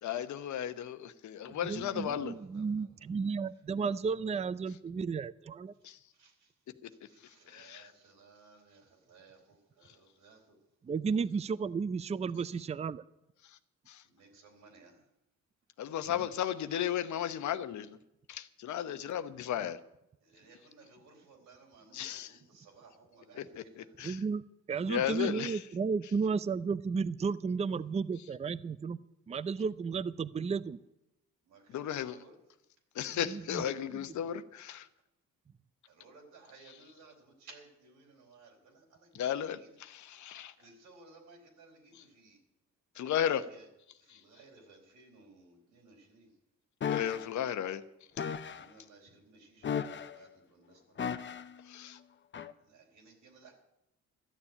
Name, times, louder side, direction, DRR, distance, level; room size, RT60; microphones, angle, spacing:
voice 1, 0.0-2.3 5.8-6.0 6.8-6.9 7.5-7.9 13.9-14.0 15.8-18.0 18.3-19.8 21.9-22.4 23.3-24.2 24.9-25.6 31.7-32.2 32.9-34.9 36.7-36.8 39.1-40.5 41.9-42.0 43.0-43.4 44.1-44.2 46.9-47.8 51.7-52.0, left 10 dB, 70° left, 11 dB, 1.0 m, -35 dB
voice 2, 1.4-5.7 10.8-13.0 16.2-16.3 24.0-24.4 24.7-29.0 29.3-30.8 33.1-33.6 33.9-34.1, right 5 dB, 20° right, 17 dB, 0.4 m, -33 dB
voice 3, 2.1-2.9 6.1-6.5 7.1-10.6 14.0-15.0 20.2-23.9 25.2-25.3 31.5-32.4 35.9-39.7 40.6-42.4 42.9-43.1 43.5-43.7 44.0-46.3 48.4-50.8 52.6-53.5, right 3 dB, 85° right, 0 dB, 4.1 m, -59 dB
sound 1, 46.8-47.3 48.2-48.7 49.6-50.3 51.0-51.6 52.3-52.5, left 7 dB, 40° left, 0.8 m, -35 dB
13.5 x 7.2 x 10.0 m, 0.87 s
cardioid pair, 90°, 30 cm